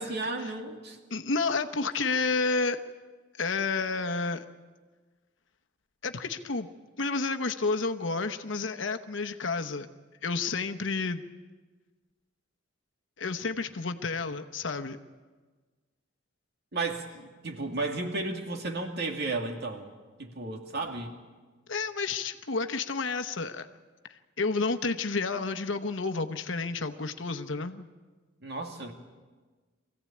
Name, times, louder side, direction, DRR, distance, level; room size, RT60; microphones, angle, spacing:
voice 1, 0.0-1.0 16.7-19.9 20.2-21.2 28.4-28.9, right 3 dB, 55° right, 3 dB, 2.4 m, -33 dB
voice 2, 1.1-2.8 3.4-4.4 6.0-6.7 7.0-9.9 10.2-11.2 13.2-15.0 21.7-23.7 24.1-27.9, left 4 dB, 70° left, 7 dB, 1.0 m, -30 dB
24.5 x 16.0 x 8.6 m, 1.4 s
head